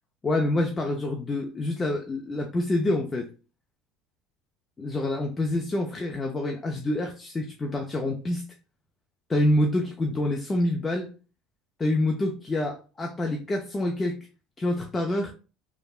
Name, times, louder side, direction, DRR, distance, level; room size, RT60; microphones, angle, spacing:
voice 1, 0.2-3.3 4.8-8.4 9.3-11.1 11.8-14.2 14.6-15.3, left 1 dB, 25° left, 1 dB, 0.5 m, -27 dB
3.3 x 2.1 x 2.4 m, 0.34 s
hypercardioid pair, 85°, 0 cm